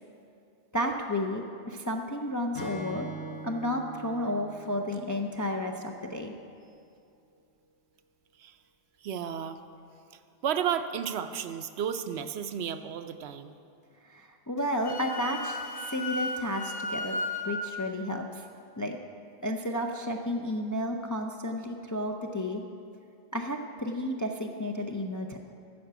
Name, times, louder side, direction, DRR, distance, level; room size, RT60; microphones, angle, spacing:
voice 1, 0.7-3.1 3.4-6.3 14.0-18.5 18.8-19.0 19.4-22.6 23.3-25.4, left 1 dB, 25° left, 2 dB, 0.4 m, -32 dB
Acoustic guitar / Strum, 2.5-6.0, right 1 dB, 80° left, 1.8 m, -42 dB
voice 2, 9.0-9.6 10.4-13.5, right 8 dB, 75° right, 9 dB, 0.8 m, -32 dB
Wind instrument woodwind instrument, 14.6-17.5, left 1 dB, 50° left, 1.0 m, -35 dB
9.5 x 6.6 x 7.9 m, 2.5 s
omnidirectional pair, 1.1 m